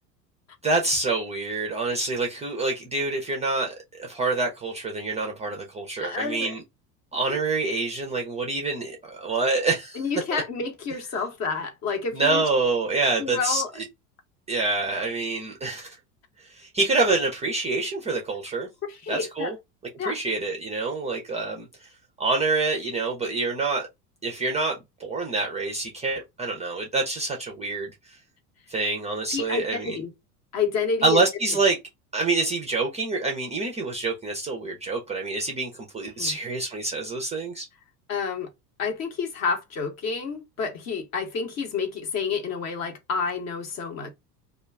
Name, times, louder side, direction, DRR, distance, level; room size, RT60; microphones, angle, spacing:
voice 1, 0.6-6.6 7.1-10.4 12.1-13.8 14.5-16.0 16.5-18.7 19.1-19.6 20.0-21.7 22.2-23.8 24.2-27.9 28.7-30.0 31.0-31.8 32.1-37.7, right 3 dB, 15° right, 0.4 m, -26 dB
voice 2, 6.0-6.5 10.0-12.4 13.2-13.7 18.9-19.5 20.0-20.2 29.3-30.1 30.5-31.2 36.2-36.3 38.1-38.5 38.8-44.1, left 5 dB, 35° left, 0.8 m, -29 dB
2.4 x 2.2 x 3.3 m
figure-of-eight pair, 75°, 48 cm